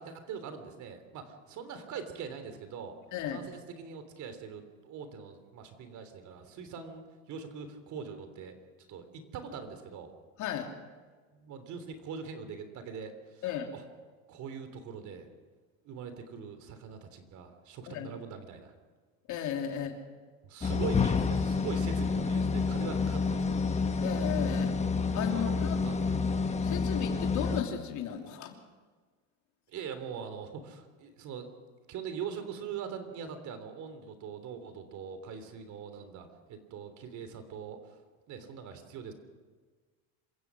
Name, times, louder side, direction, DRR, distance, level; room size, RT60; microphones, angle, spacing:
voice 1, 0.0-2.9 3.3-8.6 8.9-10.1 11.3-13.4 13.7-13.8 14.3-15.3 15.8-18.7 20.4-23.8 25.1-26.3 29.7-31.5 31.9-38.0 38.3-39.1, right 6 dB, 50° right, 9 dB, 3.3 m, -42 dB
voice 2, 3.1-3.4 10.4-10.7 13.4-13.7 17.9-18.1 19.3-20.0 24.0-24.7 25.1-25.8 26.6-28.6, left 9 dB, 50° left, 3 dB, 3.1 m, -35 dB
sound 1, 20.6-27.6, left 4 dB, 15° left, 1.3 m, -29 dB
27.0 x 16.0 x 6.2 m, 1.4 s
supercardioid pair, 115°, 38 cm